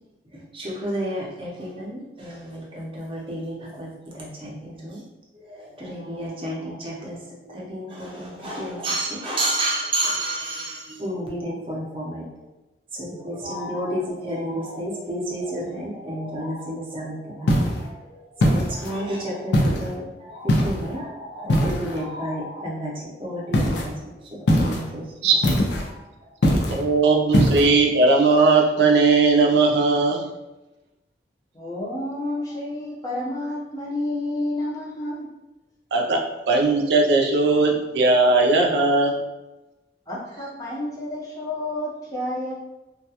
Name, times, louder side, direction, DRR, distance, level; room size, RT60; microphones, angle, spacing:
voice 1, 0.3-5.0 5.3-12.2 12.9-25.1 25.9-26.0, right 1 dB, 30° right, -4 dB, 0.6 m, -31 dB
sound 1, 17.5-17.8 18.4-19.0 19.5-19.9 20.5-20.9 21.5-22.0 23.5-23.9 24.5-24.9 25.4-25.9 26.4-26.8 27.3-27.7, equal, 85° left, 0.4 m, -20 dB
voice 2, 26.7-30.2 35.9-36.2 36.5-39.2, right 3 dB, 75° right, 1 dB, 0.4 m, -18 dB
voice 3, 31.5-35.3 40.1-42.5, left 1 dB, 20° left, -6 dB, 0.5 m, -30 dB
2.3 x 2.1 x 2.7 m, 1.0 s
head